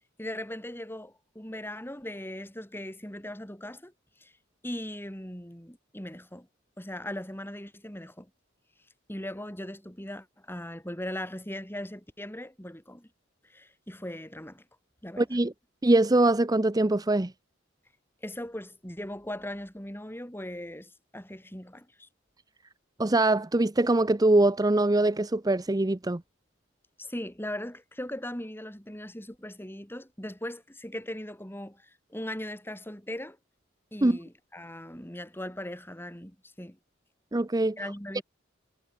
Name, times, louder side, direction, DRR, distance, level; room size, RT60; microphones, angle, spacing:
voice 1, 0.2-3.9 4.2-4.3 4.6-6.5 6.8-8.3 9.1-13.1 13.4-14.7 15.0-15.4 18.2-22.1 27.0-33.4 33.9-36.8 37.8-38.2, left 1 dB, 10° left, 5.4 m, -39 dB
voice 2, 15.2-15.5 15.8-17.3 23.0-26.2 34.0-34.2 37.3-37.8 38.1-38.2, right 2 dB, 20° right, 0.7 m, -23 dB
head